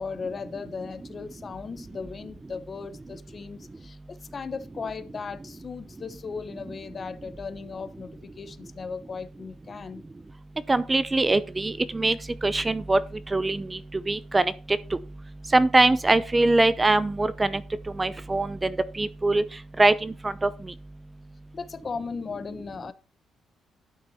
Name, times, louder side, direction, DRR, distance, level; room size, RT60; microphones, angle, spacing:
voice 1, 0.0-10.0 21.5-22.9, left 5 dB, 40° left, 1.1 m, -37 dB
voice 2, 10.7-13.0 13.3-13.8 14.1-14.8 15.5-17.6 18.0-19.4 19.8-20.5, right 2 dB, 20° right, 0.7 m, -22 dB
12.0 x 6.0 x 4.2 m
cardioid pair, 95°, 0 cm